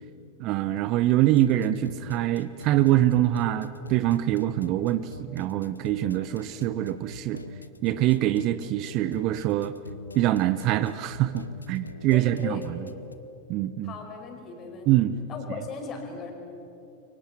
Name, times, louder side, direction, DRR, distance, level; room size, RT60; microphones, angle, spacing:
voice 1, 0.4-7.4 7.8-9.7 10.1-12.8 13.5-14.0 14.9-15.2, right 13 dB, 40° right, 14 dB, 0.7 m, -24 dB
sound 1, 1.2-13.2, left 2 dB, 80° left, 0.9 m, -43 dB
voice 2, 12.1-13.0 13.8-15.0 15.3-16.3, left 5 dB, 30° left, 3 dB, 4.9 m, -38 dB
29.5 x 24.0 x 6.0 m, 2.9 s
figure-of-eight pair, 90°, 0 cm